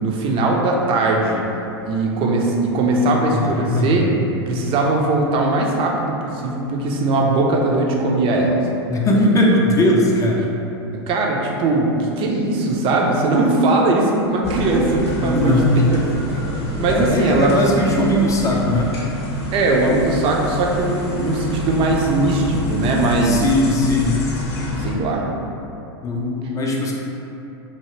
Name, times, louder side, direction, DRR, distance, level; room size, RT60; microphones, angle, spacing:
voice 1, 0.0-1.4 1.8-4.1 4.5-8.6 11.1-15.6 16.8-17.6 19.5-23.4 24.8-25.2, right 2 dB, 40° right, -1 dB, 0.5 m, -19 dB
voice 2, 3.3-4.0 8.9-10.5 15.2-15.8 16.9-18.9 23.1-24.2 26.0-26.9, left 1 dB, 25° left, -2 dB, 0.5 m, -19 dB
sound 1, 14.4-25.0, left 2 dB, 75° left, 0.7 m, -27 dB
2.8 x 2.7 x 3.0 m, 2.9 s
hypercardioid pair, 100°, 14 cm